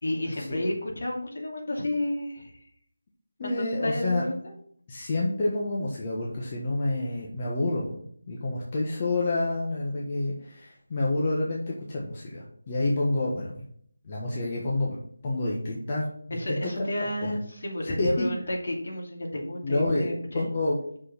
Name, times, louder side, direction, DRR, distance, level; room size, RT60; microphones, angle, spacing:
voice 1, 0.0-2.6 3.4-4.5 16.3-20.5, left 1 dB, 55° left, -1 dB, 2.7 m, -31 dB
voice 2, 3.4-4.2 4.9-8.0 8.3-13.6 14.0-15.0 15.2-16.0 16.5-16.9 17.2-17.3 18.0-18.3 19.6-20.1 20.3-21.0, left 2 dB, 25° left, -4 dB, 1.1 m, -28 dB
6.1 x 5.6 x 5.9 m, 0.63 s
figure-of-eight pair, 175°, 0 cm